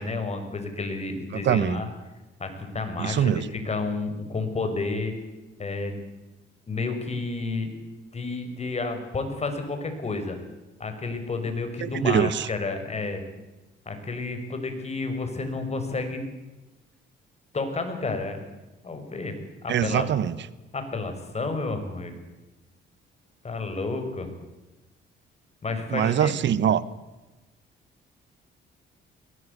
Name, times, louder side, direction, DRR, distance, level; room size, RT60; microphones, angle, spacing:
voice 1, 0.0-1.9 2.4-5.1 5.6-6.0 6.7-7.7 8.1-10.4 10.8-13.2 13.9-16.2 17.5-18.4 18.8-19.4 19.6-20.1 20.7-22.1 23.4-24.3 25.6-26.4, left 3 dB, 35° left, 6 dB, 5.9 m, -30 dB
voice 2, 1.3-1.8 3.0-3.5 11.8-12.5 19.7-20.3 25.9-26.8, right 9 dB, 65° right, 17 dB, 1.4 m, -23 dB
22.5 x 18.5 x 8.4 m, 1.1 s
cardioid pair, 90°, 20 cm